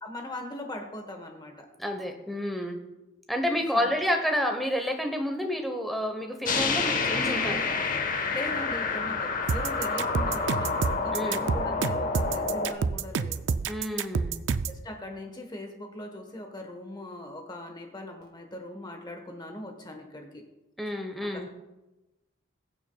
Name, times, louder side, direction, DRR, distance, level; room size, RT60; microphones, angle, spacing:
voice 1, 0.0-1.7 3.7-4.1 8.3-13.4 14.7-20.4 21.2-21.5, left 1 dB, 20° left, 4 dB, 1.1 m, -40 dB
voice 2, 1.8-2.8 3.3-7.7 11.1-11.4 13.7-14.4 20.8-21.5, equal, ahead, 4 dB, 0.9 m, -29 dB
sound 1, 6.4-12.7, left 4 dB, 40° left, 0.9 m, -28 dB
sound 2, 9.5-14.8, right 5 dB, 60° right, 0.4 m, -28 dB
21.0 x 7.1 x 2.3 m, 1.0 s
head